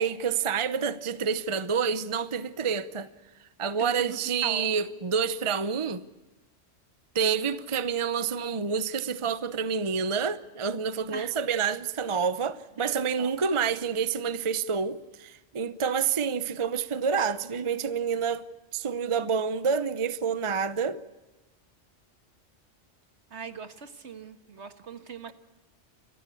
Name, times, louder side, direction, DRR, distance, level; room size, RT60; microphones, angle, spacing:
voice 1, 0.0-3.1 3.6-6.0 7.1-18.4 18.7-21.0, right 6 dB, 30° right, 0.7 m, -28 dB
voice 2, 3.8-4.7 11.1-11.3 12.8-13.3 23.3-25.3, right 5 dB, 65° right, 1.8 m, -40 dB
29.5 x 14.5 x 8.4 m
omnidirectional pair, 1.2 m